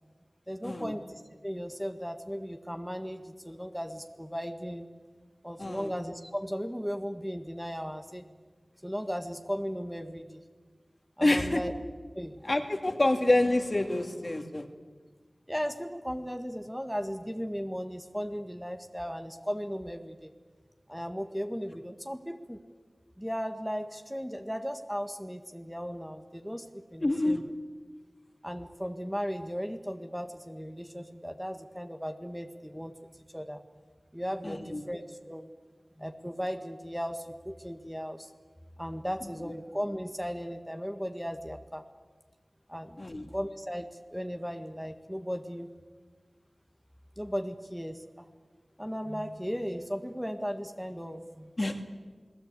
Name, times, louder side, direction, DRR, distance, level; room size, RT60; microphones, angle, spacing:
voice 1, 0.5-1.0 1.4-4.9 5.4-8.3 8.8-10.4 11.2-11.7 12.1-12.4 15.5-20.3 20.9-22.6 23.2-27.5 28.4-32.9 33.3-33.6 34.1-35.5 36.0-38.3 38.8-41.8 42.7-45.7 47.2-48.3 48.8-51.5, equal, ahead, 6 dB, 1.6 m, -36 dB
voice 2, 5.6-5.9 11.2-11.6 12.4-14.7 27.0-27.4 34.4-34.8 43.0-43.3 51.6-51.8, left 1 dB, 45° left, 5 dB, 2.3 m, -27 dB
28.5 x 19.0 x 8.3 m, 1.5 s
wide cardioid pair, 50°, 0 cm